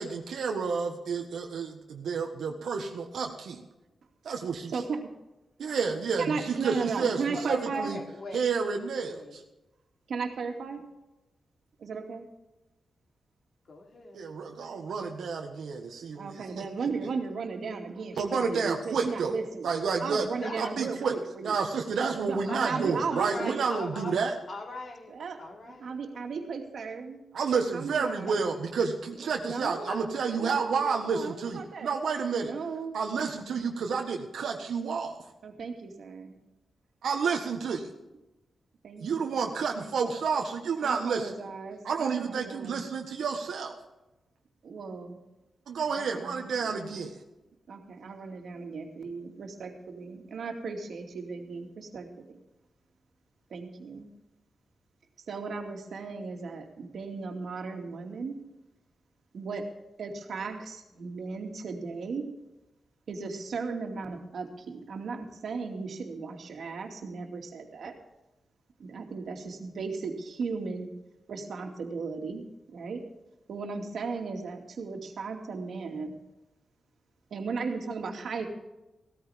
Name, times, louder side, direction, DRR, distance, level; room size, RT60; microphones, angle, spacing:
voice 1, 0.0-3.6 4.2-4.7 5.6-8.0 8.3-9.4 14.1-16.6 18.2-19.3 19.6-20.3 20.6-21.1 21.4-24.3 27.3-32.5 32.9-35.2 37.0-37.9 39.0-41.3 41.8-43.7 45.7-47.2, right 5 dB, 90° right, 2 dB, 1.5 m, -30 dB
voice 2, 6.2-8.0 10.1-10.9 11.8-12.3 16.1-19.7 20.0-21.5 22.0-23.6 25.1-25.4 25.8-27.2 27.7-28.7 29.4-30.1 30.4-31.9 32.4-32.9 35.4-36.4 38.8-39.6 40.8-42.9 44.6-45.2 45.9-46.4 47.7-52.3 53.5-54.1 55.2-58.4 59.3-59.7 60.0-62.3 63.1-67.9 68.8-70.9 71.3-73.0 73.5-76.1 77.3-78.5, right 4 dB, 70° right, 3 dB, 2.5 m, -36 dB
voice 3, 7.3-8.4 9.0-9.4 13.6-14.2 18.1-18.4 20.4-20.7 22.5-24.2 24.5-25.1 25.4-25.8 28.3-28.4 29.9-30.0 45.8-46.0 46.2-46.7, left 2 dB, 45° left, 1 dB, 3.2 m, -41 dB
16.5 x 14.0 x 3.6 m, 0.98 s
wide cardioid pair, 130°, 0 cm